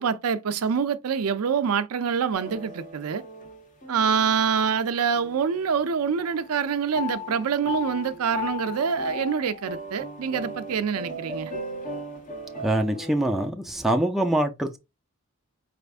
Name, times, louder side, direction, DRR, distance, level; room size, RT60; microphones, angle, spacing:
voice 1, 0.0-3.2 3.9-11.5, right 6 dB, 85° right, 0.5 m, -25 dB
sound 1, 2.3-5.8 6.2-13.5, left 1 dB, 35° left, 1.2 m, -37 dB
voice 2, 12.6-14.8, right 1 dB, ahead, 0.4 m, -24 dB
5.0 x 3.4 x 2.4 m
head